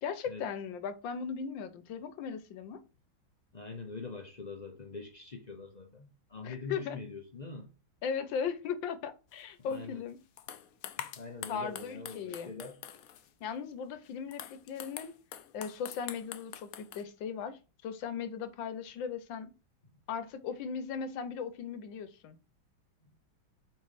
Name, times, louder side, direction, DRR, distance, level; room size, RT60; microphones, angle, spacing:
voice 1, 0.0-2.8 6.4-7.0 8.0-10.2 11.5-12.5 13.4-15.1 15.5-19.5 20.1-22.4, left 6 dB, 70° left, 1.5 m, -38 dB
voice 2, 3.5-7.7 9.6-10.0 11.2-12.8, left 4 dB, 45° left, 0.5 m, -43 dB
sound 1, 9.7-9.8 10.4-13.3 14.1-17.0, left 10 dB, 90° left, 0.7 m, -45 dB
4.7 x 4.5 x 5.7 m
omnidirectional pair, 2.3 m